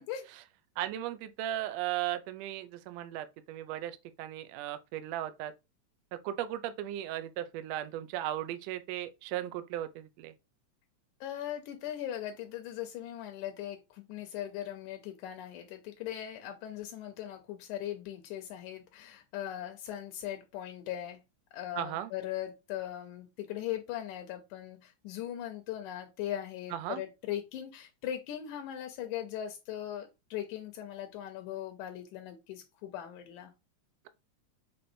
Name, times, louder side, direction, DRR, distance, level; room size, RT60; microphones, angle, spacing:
voice 1, 0.8-5.5 6.2-10.3 21.7-22.1 26.7-27.0, right 12 dB, 80° right, 1.5 m, -36 dB
voice 2, 11.2-21.2 21.5-33.5, left 11 dB, 85° left, 2.1 m, -39 dB
5.9 x 3.3 x 2.6 m
omnidirectional pair, 3.5 m